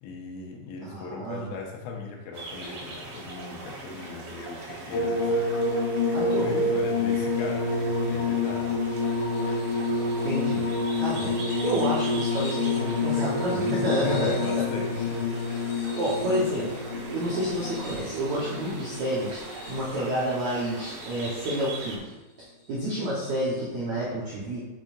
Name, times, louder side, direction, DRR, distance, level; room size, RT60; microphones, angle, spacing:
voice 1, 0.0-5.5 6.1-8.8 13.7-15.9, left 4 dB, 85° left, 0 dB, 3.2 m, -38 dB
voice 2, 0.8-1.6 6.1-6.7 10.2-10.7 11.0-14.6 15.9-16.7 17.1-22.1 22.4-24.6, right 1 dB, 80° right, -7 dB, 1.6 m, -29 dB
sound 1, 2.3-22.0, right 2 dB, 60° right, 3.3 m, -41 dB
sound 2, 4.9-20.2 21.0-21.7 23.2-23.3, left 3 dB, 65° left, 1.9 m, -28 dB
8.0 x 5.3 x 2.6 m, 1.1 s
omnidirectional pair, 5.2 m